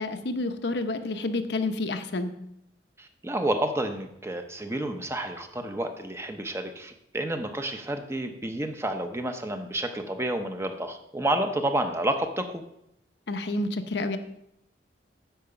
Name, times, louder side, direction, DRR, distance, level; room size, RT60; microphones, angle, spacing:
voice 1, 0.0-2.3 13.3-14.2, left 2 dB, 65° left, 8 dB, 0.8 m, -29 dB
voice 2, 3.0-12.6, right 1 dB, 15° right, 6 dB, 0.7 m, -30 dB
10.0 x 4.9 x 6.9 m, 0.79 s
head